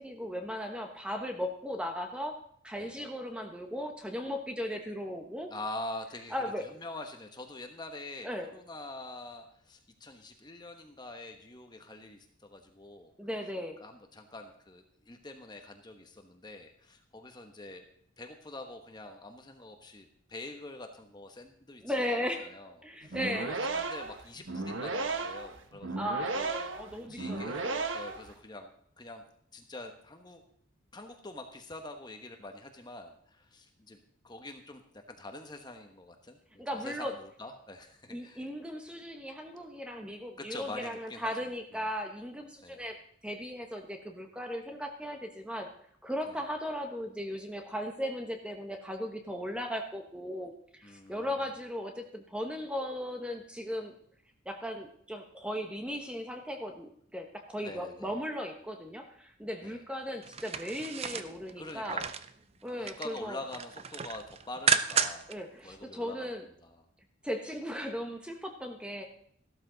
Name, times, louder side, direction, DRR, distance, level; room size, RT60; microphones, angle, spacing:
voice 1, 0.0-2.3 2.6-5.5 6.3-6.7 8.2-8.5 13.2-13.8 21.8-22.5 22.8-23.5 26.0-27.8 36.6-37.1 38.1-43.0 43.2-45.7 46.0-53.9 54.4-62.0 62.6-63.4 65.3-66.5 67.2-69.0, equal, 5° right, 4 dB, 1.1 m, -37 dB
voice 2, 5.5-13.1 13.8-17.8 18.2-21.9 22.4-22.7 23.0-26.0 26.9-29.2 29.5-30.4 30.9-34.0 34.2-38.4 40.4-41.9 42.6-42.8 46.3-46.4 50.8-51.4 57.6-58.1 59.6-59.8 61.6-62.1 62.8-65.3 65.6-66.3 66.6-66.8, left 2 dB, 20° left, 5 dB, 1.1 m, -45 dB
sound 1, 23.0-28.3, right 3 dB, 70° right, 1.2 m, -35 dB
sound 2, 60.2-62.3 62.7-63.2 63.5-65.3 65.7-65.8, right 7 dB, 30° right, 0.5 m, -32 dB
14.0 x 12.5 x 4.0 m, 0.65 s
head